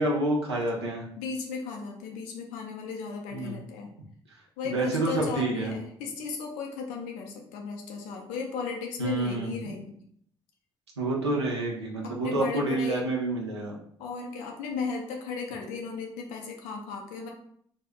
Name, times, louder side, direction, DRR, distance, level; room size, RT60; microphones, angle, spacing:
voice 1, 0.0-1.0 3.3-3.6 4.6-5.7 9.0-9.5 11.0-13.7, right 2 dB, 90° right, -2 dB, 0.4 m, -28 dB
voice 2, 1.2-3.9 4.6-9.9 12.0-13.0 14.0-17.3, left 5 dB, 70° left, 1 dB, 0.5 m, -35 dB
2.4 x 2.0 x 3.5 m, 0.65 s
figure-of-eight pair, 40°, 14 cm